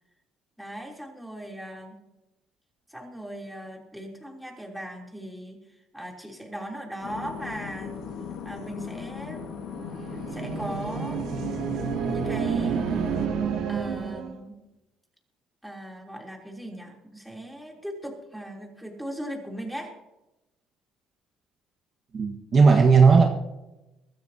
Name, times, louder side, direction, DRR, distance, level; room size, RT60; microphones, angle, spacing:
voice 1, 0.6-2.0 2.9-8.0 8.4-9.6 10.0-11.3 12.1-12.8 13.7-14.5 15.6-19.9, right 1 dB, ahead, 0 dB, 3.3 m, -38 dB
sound 1, 7.0-13.3, left 6 dB, 85° left, 1.7 m, -37 dB
sound 2, 9.8-14.4, right 7 dB, 70° right, 1.5 m, -29 dB
voice 2, 22.1-23.2, right 5 dB, 40° right, 2 dB, 1.5 m, -16 dB
22.5 x 13.0 x 2.9 m, 0.98 s
cardioid pair, 105°, 0 cm